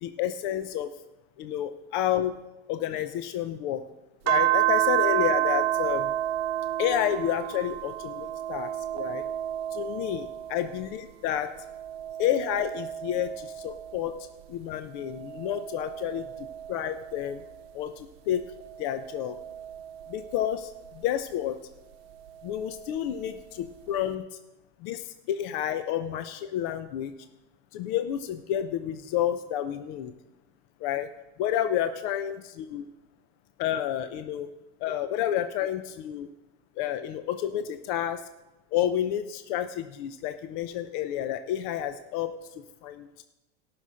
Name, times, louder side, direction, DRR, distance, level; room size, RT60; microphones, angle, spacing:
voice 1, 0.0-0.9 1.4-2.3 2.7-3.8 4.2-6.1 6.8-9.2 9.7-11.5 12.2-14.1 14.5-17.4 17.7-18.4 18.8-19.4 20.1-21.6 22.4-24.2 24.8-27.1 27.7-30.1 30.8-31.1 31.4-32.8 33.6-34.5 34.8-36.3 36.8-38.2 38.7-42.3 42.8-43.2, left 11 dB, 50° left, 9 dB, 0.7 m, -30 dB
sound 1, 4.3-11.0 11.4-14.3 14.9-17.7 18.4-20.9 22.2-23.3, right 14 dB, 75° right, 0.8 m, -31 dB
17.5 x 6.1 x 6.3 m, 1.0 s
supercardioid pair, 150°, 31 cm